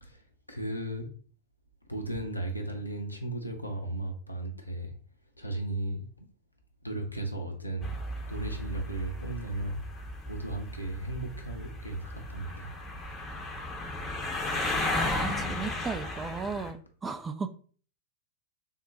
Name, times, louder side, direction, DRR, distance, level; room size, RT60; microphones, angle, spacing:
voice 1, 0.0-1.1 1.9-5.0 5.4-6.3 6.8-7.9 8.3-9.8 10.3-12.7 15.4-15.6, right 2 dB, 85° left, 3 dB, 0.6 m, -36 dB
sound 1, 7.8-16.7, left 2 dB, 20° left, 0.7 m, -35 dB
voice 2, 14.9-16.8 17.0-17.5, right 5 dB, 15° right, 9 dB, 0.3 m, -35 dB
3.6 x 2.1 x 4.0 m, 0.42 s
figure-of-eight pair, 90°, 0 cm